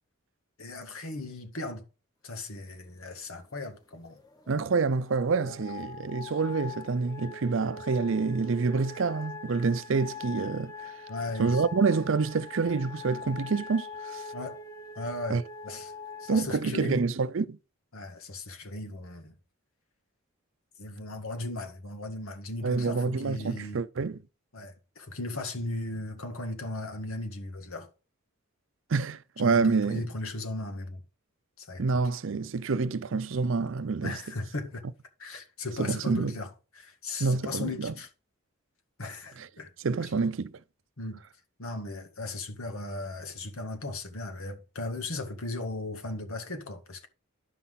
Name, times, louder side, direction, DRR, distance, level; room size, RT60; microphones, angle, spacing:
voice 1, 0.6-1.9 2.2-4.2 5.5-5.6 11.1-11.6 14.3-14.6 15.0-15.9 16.2-17.1 17.9-19.3 20.8-23.8 24.5-27.9 29.4-31.0 31.6-31.8 34.0-34.8 35.2-36.5 36.8-38.1 39.0-39.7 40.0-40.1 41.0-41.2 41.6-47.1, left 2 dB, 90° left, 1.9 m, -37 dB
sound 1, 3.9-16.4, left 4 dB, 20° left, 1.5 m, -43 dB
voice 2, 4.5-10.9 11.4-14.2 15.3-15.4 16.3-17.6 22.6-24.2 28.9-30.1 31.8-34.1 35.8-36.4 37.2-37.9 39.4-39.5 39.8-40.5, right 4 dB, 65° right, 0.5 m, -27 dB
12.0 x 5.7 x 3.9 m
head